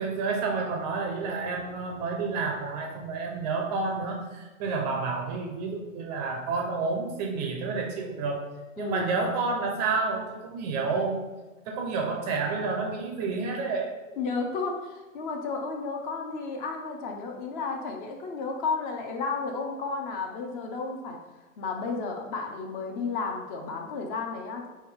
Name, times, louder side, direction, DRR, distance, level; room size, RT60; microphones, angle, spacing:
voice 1, 0.0-8.4 8.8-11.2 11.7-14.0, right 4 dB, 35° right, 2 dB, 0.4 m, -30 dB
voice 2, 8.8-9.1 14.2-21.2 21.6-24.7, left 4 dB, 40° left, 3 dB, 0.5 m, -32 dB
3.3 x 2.6 x 3.5 m, 1.2 s
hypercardioid pair, 120°, 40 cm